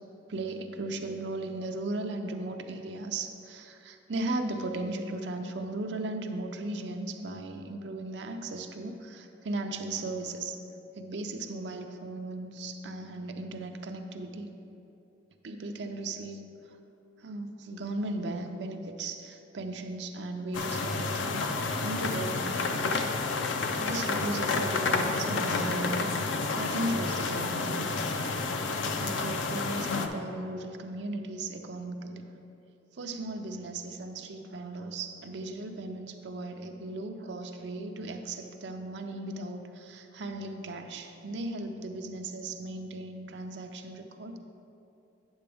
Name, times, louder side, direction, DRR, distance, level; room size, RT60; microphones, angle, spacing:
voice 1, 0.3-10.6 10.9-14.5 15.4-16.5 17.2-21.5 21.8-23.0 23.8-27.9 29.0-32.3 32.9-44.4, right 2 dB, 65° right, 5 dB, 0.6 m, -36 dB
sound 1, 20.5-30.1, left 3 dB, 80° left, 0.5 m, -30 dB
8.9 x 6.8 x 3.4 m, 2.7 s
head